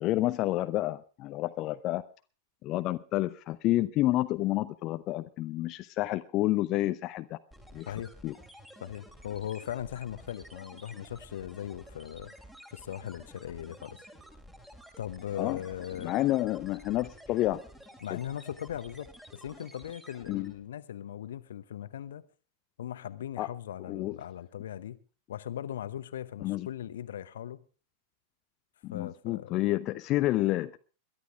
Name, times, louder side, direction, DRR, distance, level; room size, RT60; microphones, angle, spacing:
voice 1, 0.0-2.0 2.6-7.4 7.7-7.9 8.2-8.3 15.4-15.6 16.0-17.6 18.1-18.2 20.3-20.5 23.4-23.5 23.9-24.1 26.4-26.7 28.8-30.8, left 16 dB, 35° left, 0.6 m, -29 dB
sound 1, 7.5-20.7, equal, 5° right, 2.8 m, -52 dB
voice 2, 8.8-12.3 12.7-14.0 15.0-16.1 18.0-22.2 22.8-25.0 25.3-27.6 28.9-29.7, left 10 dB, 60° left, 0.9 m, -39 dB
22.0 x 11.5 x 3.5 m
figure-of-eight pair, 90°, 0 cm